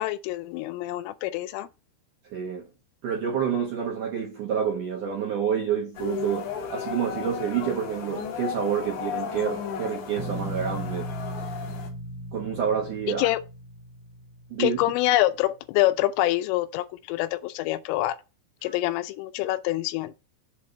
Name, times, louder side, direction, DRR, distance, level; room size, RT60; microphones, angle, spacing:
voice 1, 0.0-1.7 13.2-13.4 14.6-18.2 18.6-20.1, left 16 dB, 90° left, 3.2 m, -26 dB
voice 2, 2.3-2.7 3.0-11.1 11.4-11.7 12.3-13.3 14.5-14.8 18.6-18.7, right 8 dB, 75° right, 1.9 m, -28 dB
sound 1, 5.9-11.9, left 7 dB, 60° left, 3.2 m, -34 dB
sound 2, 10.2-15.1, right 1 dB, 45° right, 1.0 m, -37 dB
7.5 x 3.4 x 6.4 m
omnidirectional pair, 5.7 m